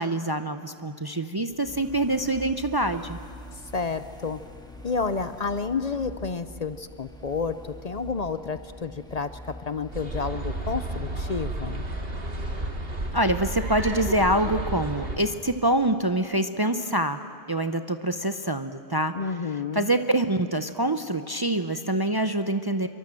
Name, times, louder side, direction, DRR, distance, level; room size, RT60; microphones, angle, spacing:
voice 1, 0.0-3.2 13.1-17.2 17.5-19.1 19.7-22.9, right 1 dB, 25° right, 9 dB, 0.6 m, -25 dB
sound 1, 1.5-15.4, equal, 5° left, 1.7 m, -46 dB
voice 2, 3.7-4.4 4.8-9.4 9.7-11.8 19.1-19.9, left 4 dB, 45° left, 12 dB, 0.7 m, -30 dB
sound 2, 9.9-15.2, right 1 dB, 65° right, 2.4 m, -32 dB
26.0 x 23.5 x 7.6 m, 2.3 s
omnidirectional pair, 1.1 m